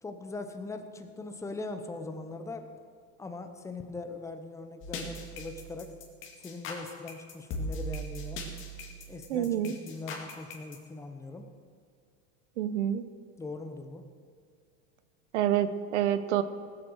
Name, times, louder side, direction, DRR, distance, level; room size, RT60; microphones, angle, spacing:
voice 1, 0.0-2.7 3.2-6.0 6.4-8.4 9.1-11.5 13.4-14.0, left 3 dB, 10° left, 6 dB, 0.9 m, -41 dB
sound 1, 4.8-10.8, equal, 35° left, 2.3 m, -39 dB
voice 2, 9.3-9.7 12.6-13.0 15.3-16.4, right 11 dB, 85° right, 12 dB, 1.1 m, -27 dB
17.5 x 8.2 x 6.3 m, 2.2 s
supercardioid pair, 155°, 34 cm